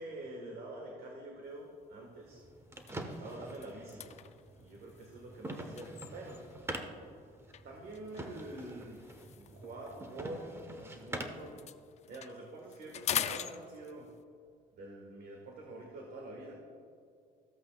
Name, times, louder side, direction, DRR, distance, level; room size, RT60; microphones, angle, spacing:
voice 1, 0.0-2.4 2.9-4.1 4.6-6.8 7.6-9.0 9.4-11.7 12.1-14.1 14.8-16.5, right 2 dB, 65° right, 0 dB, 1.5 m, -46 dB
sound 1, 1.6-1.8 2.3-2.4 2.7-6.7 7.5-11.1 11.4-14.2, left 9 dB, 40° left, 0.4 m, -43 dB
sound 2, 2.3-11.5, right 1 dB, 15° right, 0.9 m, -45 dB
14.0 x 8.0 x 2.3 m, 2.3 s
cardioid pair, 110°, 17 cm